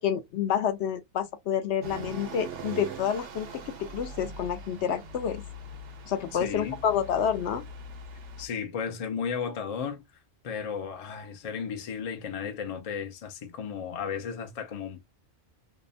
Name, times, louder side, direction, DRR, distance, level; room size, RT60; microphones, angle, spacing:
voice 1, 0.0-5.4 6.1-7.6, left 8 dB, 70° left, 0.8 m, -29 dB
sound 1, 1.8-8.5, right 2 dB, 80° right, 1.0 m, -42 dB
voice 2, 6.3-6.8 8.4-10.0 10.4-15.0, left 6 dB, 45° left, 0.5 m, -34 dB
2.8 x 2.0 x 2.5 m
omnidirectional pair, 1.2 m